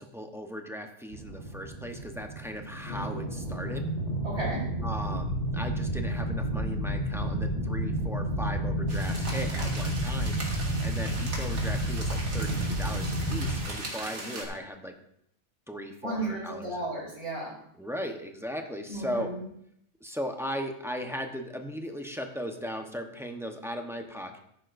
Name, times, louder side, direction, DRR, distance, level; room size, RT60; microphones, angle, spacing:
voice 1, 0.0-3.9 4.8-10.4 10.8-14.9 15.7-16.9 17.8-19.3 20.0-24.4, equal, ahead, 4 dB, 0.8 m, -37 dB
sound 1, 1.1-13.6, right 1 dB, 55° left, 3.8 m, -31 dB
voice 2, 4.2-4.7 16.0-17.6 18.9-19.4, right 2 dB, 20° right, -9 dB, 4.4 m, -34 dB
sound 2, 8.9-14.4, right 2 dB, 75° right, 2.4 m, -39 dB
14.0 x 11.0 x 2.6 m, 0.71 s
omnidirectional pair, 1.5 m